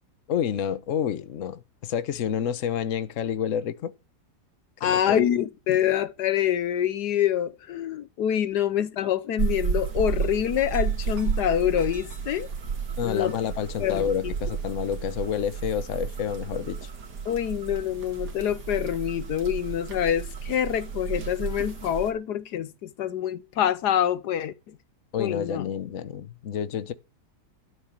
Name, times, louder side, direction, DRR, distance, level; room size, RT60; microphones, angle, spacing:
voice 1, 0.3-3.9 4.8-5.2 13.0-16.8 25.1-26.9, left 8 dB, 55° left, 1.2 m, -29 dB
voice 2, 4.8-12.5 13.0-13.3 13.8-14.1 17.2-24.5 25.2-25.7, left 10 dB, 75° left, 1.4 m, -26 dB
sound 1, 9.4-22.1, right 6 dB, 75° right, 2.7 m, -32 dB
12.5 x 6.9 x 7.2 m
omnidirectional pair, 1.8 m